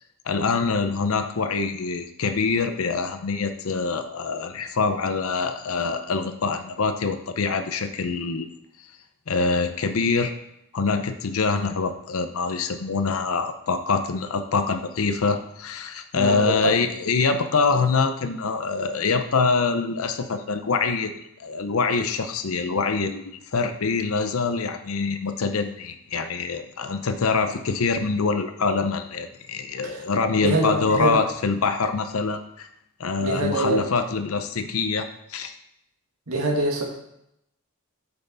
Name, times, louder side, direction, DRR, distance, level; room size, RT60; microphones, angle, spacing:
voice 1, 0.3-8.5 9.3-10.3 10.7-21.1 21.4-32.7 33.0-35.5, left 4 dB, 75° left, 8 dB, 0.6 m, -25 dB
voice 2, 16.1-16.8 29.8-30.0 30.4-31.2 33.2-33.8 36.3-36.8, right 2 dB, 90° right, -1 dB, 1.8 m, -24 dB
8.1 x 5.7 x 3.9 m, 0.79 s
head